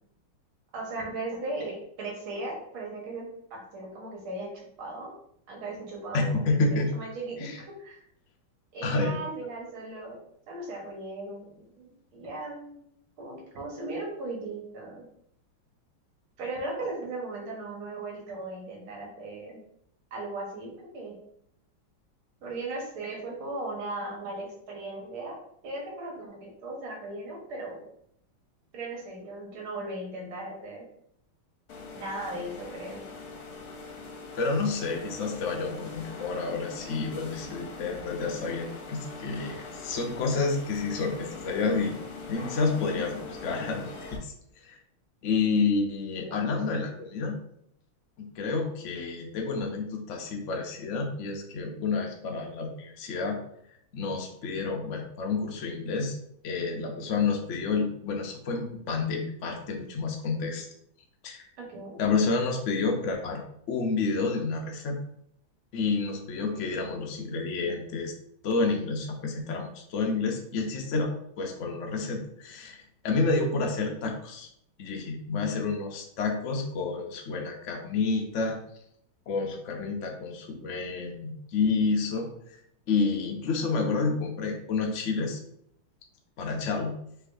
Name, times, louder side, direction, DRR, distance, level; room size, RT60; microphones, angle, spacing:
voice 1, 0.7-4.5 4.8-5.1 5.5-8.0 8.7-10.2 10.5-12.8 13.2-15.0 16.4-19.6 20.1-21.2 22.4-27.8 28.7-30.8 31.9-33.0 46.2-46.5 61.6-62.0, right 2 dB, 80° right, -1 dB, 2.0 m, -37 dB
voice 2, 6.1-6.9 7.4-7.6 8.8-9.2 34.3-41.9 42.3-44.3 44.6-44.8 45.2-47.4 48.2-53.4 53.9-56.2 56.4-60.7 61.2-61.5 62.0-63.4 63.7-65.0 65.7-68.1 68.4-74.5 74.8-78.6 79.3-82.3 82.9-85.4 86.4-87.0, left 4 dB, 85° left, 2 dB, 0.6 m, -29 dB
sound 1, 31.7-44.2, left 3 dB, 60° left, 1.1 m, -42 dB
5.7 x 3.2 x 2.6 m, 0.71 s
omnidirectional pair, 2.3 m